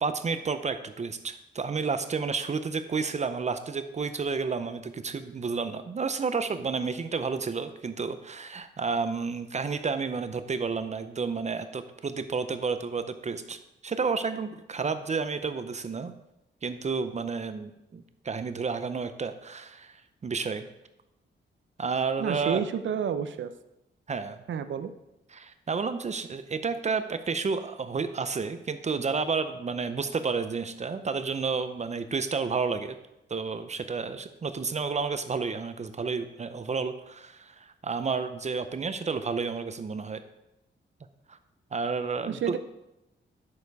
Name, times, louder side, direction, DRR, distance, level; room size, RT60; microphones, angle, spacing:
voice 1, 0.0-16.1 16.6-20.7 21.8-22.6 24.1-24.4 25.3-33.0 33.3-40.2 41.3-41.4 41.7-42.6, right 5 dB, 35° right, 10 dB, 0.6 m, -31 dB
voice 2, 22.2-23.5 24.5-24.9 42.3-42.6, right 8 dB, 75° right, 10 dB, 0.6 m, -30 dB
11.0 x 6.8 x 4.7 m, 0.90 s
wide cardioid pair, 150°, 20 cm